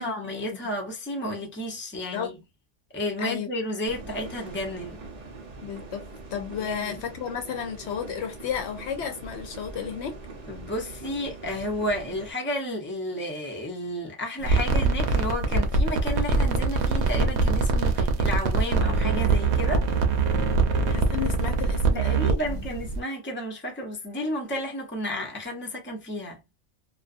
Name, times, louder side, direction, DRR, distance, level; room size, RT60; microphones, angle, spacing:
voice 1, 0.0-2.3 2.9-5.0 6.6-7.0 10.5-19.9 21.9-26.4, left 1 dB, 10° left, 0.6 m, -32 dB
voice 2, 3.2-3.5 5.6-10.2 20.9-22.6, left 8 dB, 70° left, 0.8 m, -33 dB
sound 1, 3.8-12.3, right 3 dB, 40° right, 0.7 m, -42 dB
sound 2, 14.4-23.0, right 3 dB, 70° right, 0.8 m, -23 dB
2.4 x 2.3 x 2.4 m
omnidirectional pair, 1.2 m